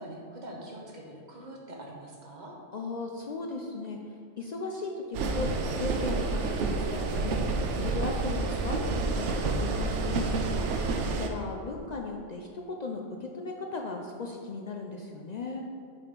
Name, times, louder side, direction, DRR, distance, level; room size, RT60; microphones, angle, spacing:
voice 1, 0.0-2.6, right 1 dB, 45° right, -1 dB, 1.0 m, -44 dB
voice 2, 2.7-4.0 4.4-7.4 7.7-8.8 9.1-10.6 11.0-15.7, left 3 dB, 60° left, 1 dB, 0.4 m, -36 dB
sound 1, 5.1-11.3, right 3 dB, 85° right, 0.9 m, -29 dB
5.5 x 4.2 x 5.2 m, 2.4 s
omnidirectional pair, 1.2 m